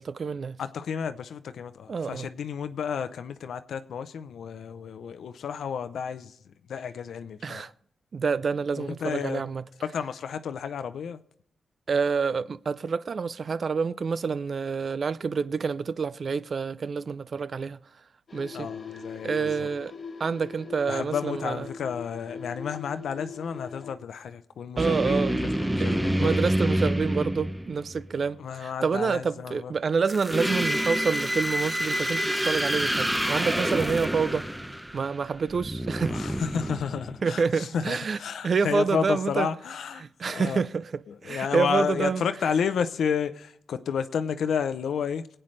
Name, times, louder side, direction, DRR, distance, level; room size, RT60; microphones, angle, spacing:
voice 1, 0.0-0.6 1.9-2.3 7.4-7.7 8.1-9.6 11.9-17.8 18.3-18.7 19.2-19.9 20.2-21.7 24.8-25.3 25.8-34.5 34.9-36.2 37.2-39.5 40.0-40.9 41.2-42.2, right 5 dB, 50° right, 0.4 m, -28 dB
voice 2, 0.6-7.7 8.8-9.5 9.8-11.2 18.5-19.7 20.9-26.5 28.4-29.7 36.1-40.7 41.1-45.3, left 7 dB, 85° left, 0.6 m, -31 dB
sound 1, 18.3-23.9, left 5 dB, 45° left, 1.3 m, -41 dB
sound 2, 24.8-28.1 30.1-37.4, equal, 5° right, 0.7 m, -27 dB
23.5 x 8.9 x 3.2 m
wide cardioid pair, 125°, 0 cm